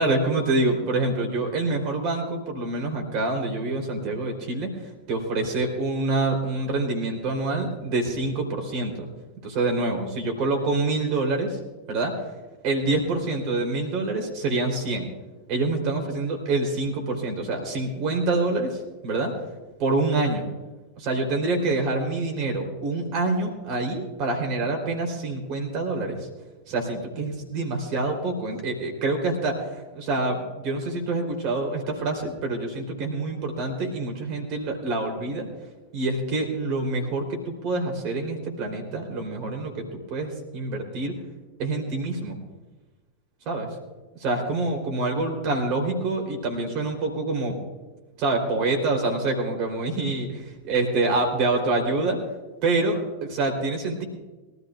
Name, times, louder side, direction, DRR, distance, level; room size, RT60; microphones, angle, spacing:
voice 1, 0.0-9.1 9.4-11.6 11.9-12.3 12.6-15.1 15.5-19.3 19.8-20.5 21.0-26.3 26.7-35.5 35.9-41.1 41.6-42.4 43.5-43.7 44.2-47.6 48.2-52.2 52.6-54.0, right 2 dB, 40° right, 3 dB, 3.6 m, -26 dB
23.0 x 14.0 x 2.5 m, 1.2 s
figure-of-eight pair, 90°, 0 cm